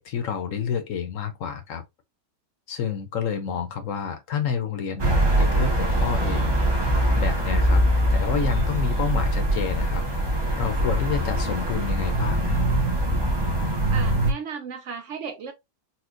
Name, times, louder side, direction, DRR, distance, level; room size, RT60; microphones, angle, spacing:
voice 1, 0.0-1.8 2.7-7.8 8.1-12.6, left 7 dB, 65° left, 1.0 m, -29 dB
sound 1, 5.0-14.3, right 1 dB, 45° right, 0.3 m, -23 dB
voice 2, 13.9-15.5, right 6 dB, 65° right, 0.9 m, -35 dB
4.2 x 2.2 x 2.5 m
omnidirectional pair, 1.6 m